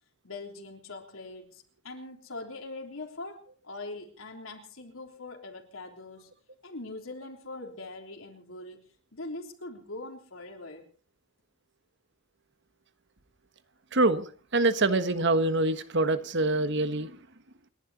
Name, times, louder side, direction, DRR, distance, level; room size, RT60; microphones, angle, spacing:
voice 1, 0.2-6.3 6.6-10.9, left 2 dB, 75° left, 2 dB, 3.5 m, -42 dB
voice 2, 13.9-17.2, right 2 dB, 55° right, 11 dB, 1.4 m, -25 dB
29.5 x 11.0 x 4.2 m, 0.40 s
head